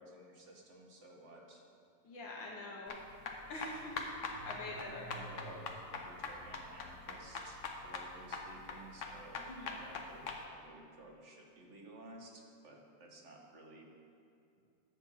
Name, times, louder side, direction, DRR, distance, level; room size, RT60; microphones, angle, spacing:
voice 1, 0.0-1.6 4.5-5.6 5.9-13.9, right 2 dB, 45° right, 0 dB, 1.4 m, -55 dB
voice 2, 2.0-3.1 3.5-5.1 5.4-5.6 9.5-9.9, left 2 dB, 75° left, -1 dB, 2.1 m, -46 dB
Car / Engine starting, 2.4-2.5 2.8-8.0, right 2 dB, 60° right, 2.8 m, -56 dB
sound 1, 2.9-10.4, left 4 dB, 55° left, 0.9 m, -43 dB
11.0 x 4.4 x 7.3 m, 2.6 s
omnidirectional pair, 2.0 m